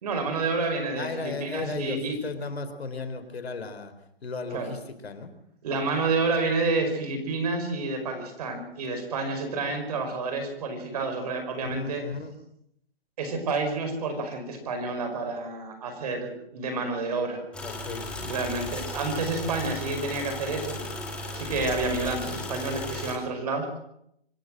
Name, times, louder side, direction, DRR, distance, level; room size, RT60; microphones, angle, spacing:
voice 1, 0.0-2.2 4.5-4.7 5.6-12.0 13.2-17.4 18.2-20.8 21.3-23.7, right 3 dB, 40° right, 7 dB, 5.1 m, -29 dB
voice 2, 1.0-3.9 4.2-5.3 11.6-12.4 17.6-18.1, left 4 dB, 80° left, 9 dB, 3.9 m, -35 dB
sound 1, 17.5-23.1, left 1 dB, 5° left, 2.6 m, -35 dB
25.5 x 13.5 x 7.7 m, 0.75 s
hypercardioid pair, 165°, 31 cm